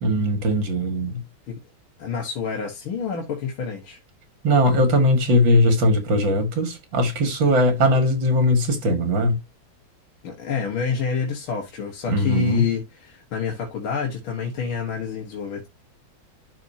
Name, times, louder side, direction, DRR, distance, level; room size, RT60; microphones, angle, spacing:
voice 1, 0.0-1.2 4.4-9.4 12.1-12.6, left 1 dB, 65° right, 2.6 m, -20 dB
voice 2, 2.0-4.0 10.2-15.7, left 5 dB, 80° left, 2.3 m, -28 dB
12.0 x 4.3 x 2.8 m
omnidirectional pair, 2.3 m